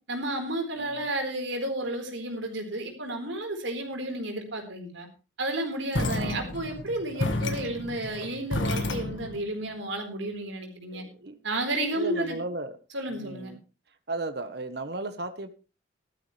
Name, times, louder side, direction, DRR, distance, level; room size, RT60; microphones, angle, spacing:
voice 1, 0.1-5.1 5.4-11.0 11.4-12.4 12.9-13.5, right 1 dB, 80° right, 3 dB, 4.3 m, -32 dB
sound 1, 5.9-9.4, left 2 dB, 80° left, 1.6 m, -31 dB
voice 2, 6.0-6.6 7.2-7.4 10.9-11.4 11.9-12.7 13.2-13.6 14.1-15.5, right 2 dB, 55° right, 10 dB, 1.2 m, -36 dB
15.5 x 13.0 x 3.3 m, 0.32 s
head